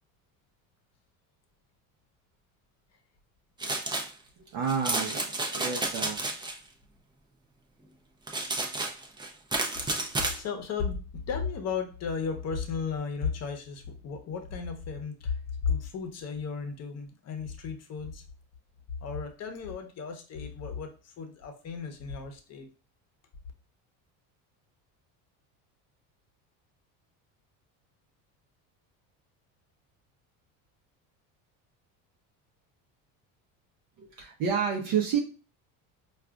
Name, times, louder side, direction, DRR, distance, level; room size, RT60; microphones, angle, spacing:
sound 1, 3.6-4.1 4.7-6.6 8.3-10.4, right 2 dB, 10° right, 0.5 m, -31 dB
voice 1, 4.4-6.2 34.0-35.2, right 7 dB, 55° right, 1 dB, 0.7 m, -30 dB
voice 2, 10.3-18.2 19.0-22.7, left 6 dB, 40° left, 5 dB, 0.8 m, -34 dB
4.6 x 2.4 x 2.4 m, 0.36 s
supercardioid pair, 105°, 40 cm